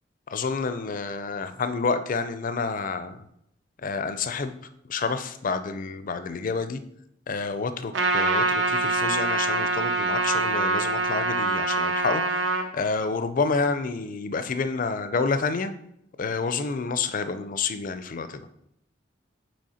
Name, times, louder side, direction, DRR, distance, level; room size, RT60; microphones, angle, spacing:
voice 1, 0.3-3.3 3.8-4.6 4.9-6.8 7.3-15.7 16.2-18.5, left 4 dB, 45° left, 11 dB, 0.5 m, -29 dB
Trumpet, 7.9-12.6, right 3 dB, 75° right, 0.8 m, -24 dB
6.3 x 4.3 x 4.3 m, 0.78 s
head